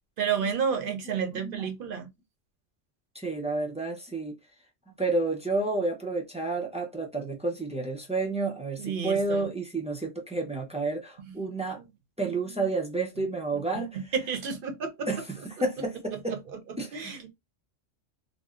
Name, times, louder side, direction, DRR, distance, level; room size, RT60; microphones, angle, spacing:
voice 1, 0.2-2.1 8.8-9.5 11.2-11.3 11.8-11.9 13.2-13.3 13.5-13.6 13.9-15.1 16.3-16.4 16.9-17.3, right 6 dB, 50° right, 0.8 m, -31 dB
voice 2, 1.1-1.7 3.2-4.3 5.0-11.8 12.2-13.9 15.1-16.4 16.8-17.2, right 3 dB, 10° right, 0.4 m, -30 dB
2.6 x 2.0 x 3.6 m
omnidirectional pair, 1.3 m